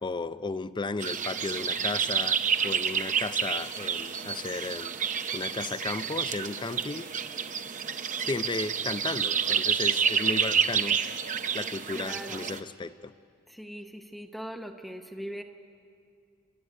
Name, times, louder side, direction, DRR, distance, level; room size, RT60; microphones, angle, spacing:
voice 1, 0.0-2.4 2.6-4.9 5.3-7.1 8.2-11.0 11.5-13.1, left 3 dB, 20° left, 14 dB, 0.5 m, -34 dB
sound 1, 1.0-12.6, right 7 dB, 35° right, 0.8 m, -29 dB
voice 2, 11.9-12.4 13.5-15.4, equal, ahead, 3 dB, 0.8 m, -40 dB
30.0 x 12.5 x 9.7 m, 2.3 s
head